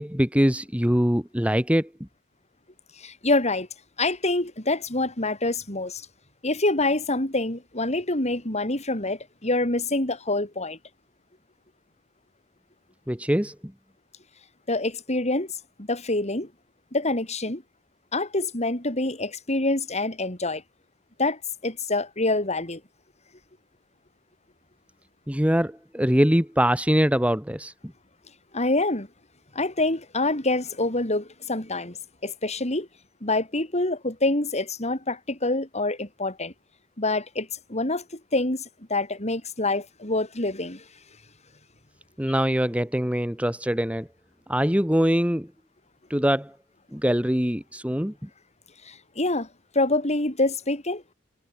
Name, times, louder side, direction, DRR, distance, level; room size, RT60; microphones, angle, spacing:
voice 1, 0.0-1.9 13.1-13.5 25.3-27.7 42.2-44.1 44.5-45.5 46.1-46.5 46.9-48.1, equal, 5° right, 2.4 m, -23 dB
voice 2, 3.0-3.7 4.0-6.1 6.4-10.8 14.7-15.5 15.8-16.5 16.9-17.6 18.1-20.6 21.2-22.8 28.5-29.1 29.5-32.0 32.2-32.9 33.2-36.5 37.0-38.6 38.9-40.8 42.3-42.4 48.8-49.5 49.7-51.0, left 2 dB, 35° left, 5.9 m, -26 dB
head